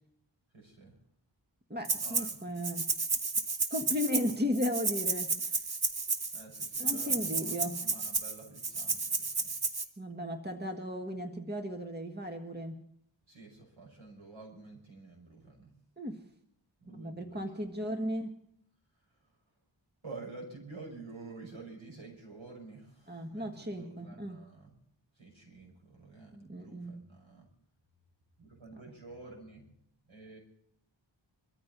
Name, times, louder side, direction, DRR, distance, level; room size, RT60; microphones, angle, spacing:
voice 1, 0.5-1.0 2.0-2.7 6.3-9.5 13.3-15.7 16.8-17.7 19.1-19.2 20.0-24.8 25.1-27.5 28.4-29.7 30.1-30.4, right 3 dB, 85° right, 0 dB, 6.2 m, -50 dB
voice 2, 1.7-2.9 3.7-5.6 6.8-7.8 10.0-12.8 16.0-16.2 17.0-18.4 23.1-24.4 26.3-27.0, left 1 dB, 20° right, 5 dB, 1.6 m, -35 dB
Rattle (instrument), 1.8-2.3 2.6-9.8, right 4 dB, 50° right, 1.4 m, -32 dB
24.5 x 14.0 x 4.1 m, 0.71 s
wide cardioid pair, 70°, 47 cm